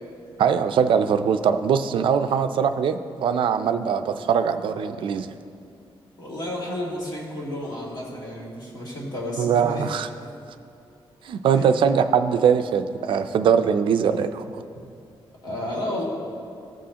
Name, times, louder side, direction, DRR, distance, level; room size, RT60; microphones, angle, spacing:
voice 1, 0.4-5.3 9.4-10.1 11.3-14.6, right 7 dB, 60° right, 8 dB, 0.4 m, -21 dB
voice 2, 6.2-9.8 11.5-11.7 15.4-16.0, left 1 dB, 45° left, -5 dB, 2.2 m, -31 dB
15.0 x 6.3 x 2.8 m, 2.6 s
wide cardioid pair, 175°, 10 cm